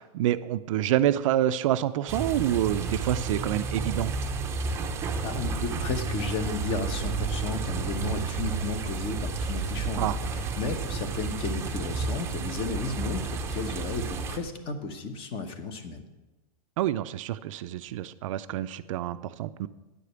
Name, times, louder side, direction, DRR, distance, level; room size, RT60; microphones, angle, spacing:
voice 1, 0.0-4.1 10.0-10.2 16.8-19.7, right 12 dB, 55° right, 13 dB, 0.4 m, -27 dB
sound 1, 2.1-14.4, right 4 dB, 15° right, 0.6 m, -31 dB
voice 2, 5.2-16.0, left 4 dB, 25° left, 9 dB, 0.9 m, -34 dB
9.7 x 5.0 x 8.0 m, 1.1 s
supercardioid pair, 155°, 20 cm